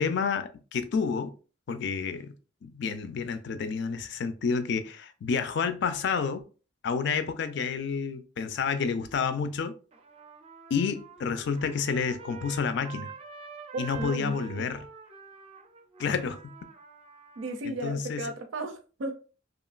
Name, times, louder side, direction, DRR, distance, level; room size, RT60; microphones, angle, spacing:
voice 1, 0.0-1.3 1.7-2.3 2.6-6.4 6.8-9.7 10.7-13.1 13.8-14.9 16.0-16.5 17.6-18.2, left 5 dB, 60° left, 0.4 m, -29 dB
Trumpet, 9.9-17.6, right 5 dB, 30° right, 0.4 m, -46 dB
voice 2, 13.7-14.7 17.4-19.1, right 2 dB, 90° right, 0.5 m, -35 dB
2.9 x 2.4 x 2.4 m
head